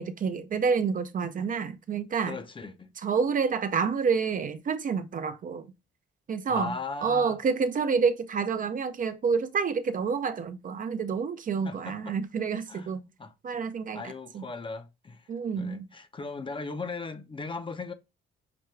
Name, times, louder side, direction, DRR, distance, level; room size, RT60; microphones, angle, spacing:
voice 1, 0.0-2.4 3.0-5.7 6.3-6.7 7.0-13.0 13.4-14.0 14.3-14.4 15.3-15.9, right 5 dB, 45° right, 0.5 m, -28 dB
voice 2, 2.2-2.9 6.5-7.4 11.6-12.2 12.7-12.9 13.2-13.3 13.9-15.3 15.5-17.9, left 4 dB, 25° left, 0.6 m, -38 dB
5.9 x 2.2 x 3.1 m
cardioid pair, 90°, 20 cm